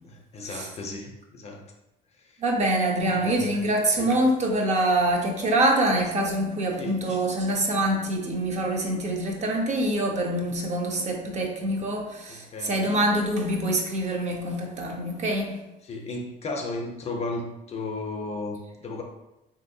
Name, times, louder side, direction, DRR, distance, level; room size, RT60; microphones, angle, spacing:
voice 1, 0.0-1.6 2.2-2.4 3.0-3.5 4.0-4.1 6.8-7.0 12.3-12.7 15.8-19.0, left 2 dB, 35° left, 2 dB, 0.5 m, -35 dB
voice 2, 2.4-15.6, right 1 dB, 40° right, 1 dB, 0.6 m, -25 dB
3.2 x 2.6 x 2.6 m, 0.93 s
cardioid pair, 105°, 18 cm